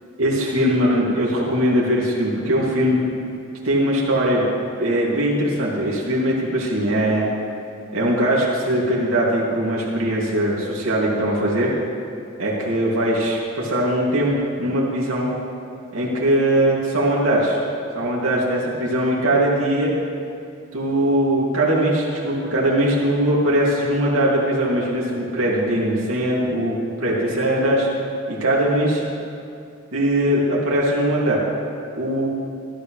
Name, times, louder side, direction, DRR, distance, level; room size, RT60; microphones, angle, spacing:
voice 1, 0.2-3.0 3.6-4.5 4.8-7.3 7.9-11.7 12.4-15.3 15.9-17.6 17.9-19.9 20.7-27.9 28.3-29.0 29.9-31.4 31.9-32.3, right 1 dB, 90° right, -5 dB, 2.5 m, -20 dB
19.0 x 13.0 x 3.3 m, 2.5 s
head